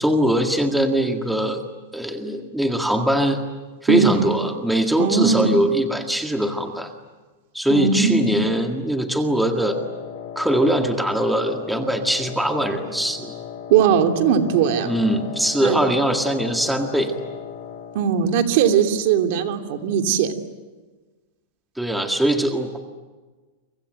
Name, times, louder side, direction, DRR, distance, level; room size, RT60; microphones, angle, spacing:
voice 1, 0.0-1.6 1.9-3.4 3.8-6.9 7.5-9.8 10.4-13.3 14.8-17.1 21.8-22.8, right 1 dB, ahead, 4 dB, 1.9 m, -21 dB
voice 2, 5.0-5.5 7.7-8.3 13.7-14.9 15.6-15.8 17.9-20.3, right 7 dB, 50° right, 5 dB, 2.9 m, -19 dB
Wind instrument woodwind instrument, 9.5-18.1, left 8 dB, 45° left, 3.5 m, -36 dB
29.5 x 25.0 x 7.8 m, 1.3 s
supercardioid pair, 160°, 0 cm